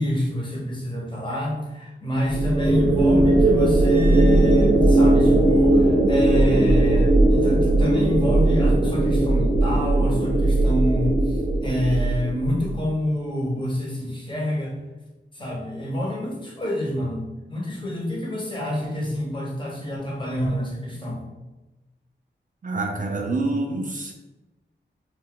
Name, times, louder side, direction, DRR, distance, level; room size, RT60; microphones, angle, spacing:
voice 1, 0.0-14.8 15.3-21.2, left 1 dB, 25° left, -3 dB, 1.0 m, -27 dB
sound 1, 2.2-12.7, right 2 dB, 75° right, 0.7 m, -18 dB
voice 2, 22.6-24.1, right 2 dB, 45° right, 2 dB, 0.4 m, -26 dB
2.3 x 2.1 x 3.6 m, 1.1 s
cardioid pair, 45°, 19 cm